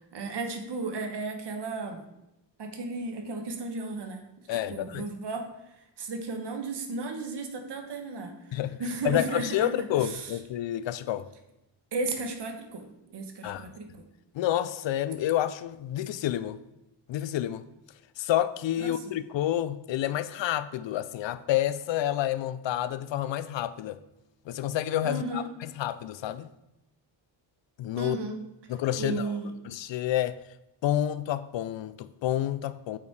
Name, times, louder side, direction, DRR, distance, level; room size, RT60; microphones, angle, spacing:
voice 1, 0.1-2.0 2.6-4.2 4.5-5.5 6.0-10.4 11.9-13.9 18.8-18.9 25.0-25.5 28.0-28.4 29.0-29.5, right 3 dB, 60° right, 1.3 m, -34 dB
voice 2, 4.5-5.1 8.5-8.8 9.0-11.3 13.4-13.7 14.3-16.6 17.1-17.7 18.2-24.0 24.5-26.5 27.8-28.2 28.7-29.4 29.6-30.4 30.8-33.0, left 12 dB, 70° left, 0.5 m, -29 dB
8.5 x 4.6 x 4.7 m
cardioid pair, 110°, 46 cm